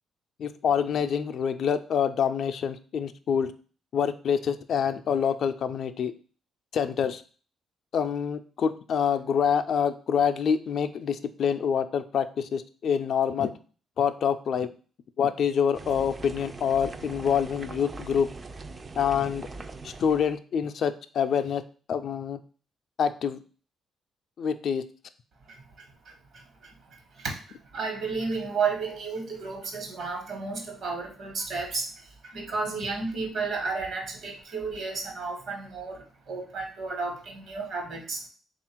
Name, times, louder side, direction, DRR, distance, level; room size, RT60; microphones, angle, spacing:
voice 1, 0.4-3.5 3.9-6.1 6.7-7.2 7.9-13.5 14.0-14.7 15.2-18.3 19.0-19.5 19.8-21.6 21.9-22.4 23.0-23.4 24.4-24.8, left 7 dB, 65° left, 10 dB, 0.3 m, -26 dB
sound 1, 15.7-20.4, right 3 dB, 35° right, 0.3 m, -41 dB
voice 2, 25.5-38.2, right 4 dB, 70° right, 3 dB, 1.2 m, -33 dB
3.4 x 2.4 x 4.4 m, 0.39 s
cardioid pair, 95°, 0 cm